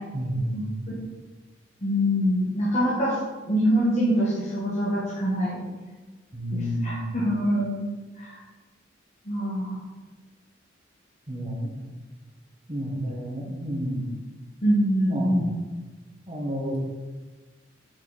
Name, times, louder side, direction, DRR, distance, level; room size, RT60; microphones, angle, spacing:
voice 1, 0.1-0.7 6.3-7.1 11.3-11.7 12.7-14.2 15.0-15.5 16.3-16.8, equal, 30° right, -3 dB, 1.4 m, -30 dB
voice 2, 1.8-3.2 3.4-5.6 6.5-7.8 8.2-8.3 9.2-9.8 14.6-15.5, equal, 35° left, -7 dB, 1.3 m, -24 dB
6.4 x 5.6 x 4.1 m, 1.3 s
head